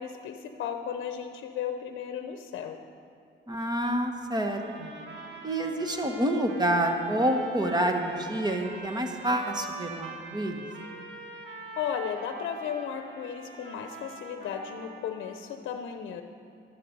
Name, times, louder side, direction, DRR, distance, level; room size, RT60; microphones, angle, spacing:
voice 1, 0.0-2.8 11.8-16.2, left 8 dB, 75° left, 6 dB, 0.7 m, -35 dB
voice 2, 3.5-4.9 5.4-10.6, right 1 dB, 20° right, 4 dB, 1.3 m, -28 dB
sound 1, 4.4-15.4, right 3 dB, 65° right, 1.7 m, -44 dB
12.0 x 11.5 x 5.3 m, 2.7 s
cardioid pair, 90°, 20 cm